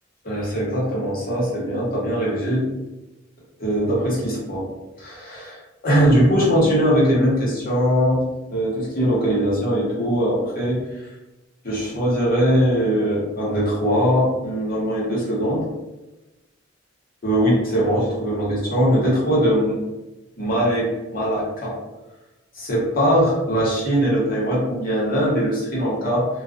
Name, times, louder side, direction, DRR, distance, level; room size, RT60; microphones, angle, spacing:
voice 1, 0.2-2.7 3.6-4.7 5.0-8.2 8.5-11.1 11.6-15.7 17.2-19.8 20.4-21.8 22.5-26.3, equal, 50° left, -5 dB, 0.9 m, -21 dB
2.3 x 2.2 x 2.4 m, 1.0 s
head